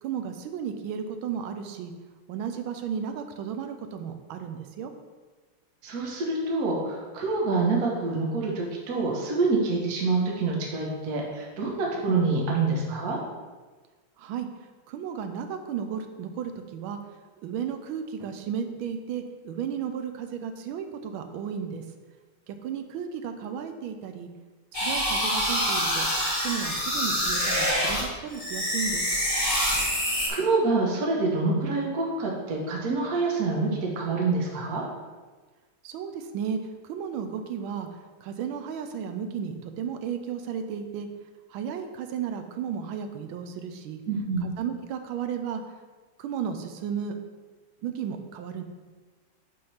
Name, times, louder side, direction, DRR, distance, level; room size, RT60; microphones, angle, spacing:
voice 1, 0.0-1.9 2.3-4.9 14.2-14.5 14.9-17.0 17.4-21.8 22.5-24.3 24.7-26.1 26.4-29.0 35.8-36.6 36.8-37.9 38.2-41.1 41.5-44.0 44.4-45.6 46.2-47.2 47.8-48.6, right 7 dB, 85° right, 7 dB, 1.4 m, -34 dB
voice 2, 5.8-13.2 30.3-34.8 44.1-44.5, right 3 dB, 55° right, -1 dB, 1.3 m, -26 dB
sound 1, 24.7-28.0 28.3-30.3, equal, 20° left, 1.3 m, -26 dB
5.4 x 3.7 x 5.5 m, 1.3 s
omnidirectional pair, 2.2 m